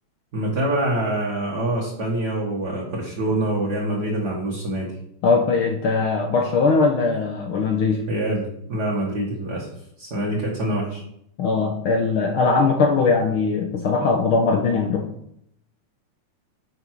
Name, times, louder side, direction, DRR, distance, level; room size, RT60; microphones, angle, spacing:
voice 1, 0.3-5.0 8.1-9.7 10.0-11.0, right 1 dB, 40° right, -3 dB, 1.8 m, -25 dB
voice 2, 5.2-8.0 11.4-15.1, left 4 dB, 70° left, 3 dB, 1.3 m, -20 dB
11.0 x 6.2 x 4.7 m, 0.73 s
omnidirectional pair, 3.4 m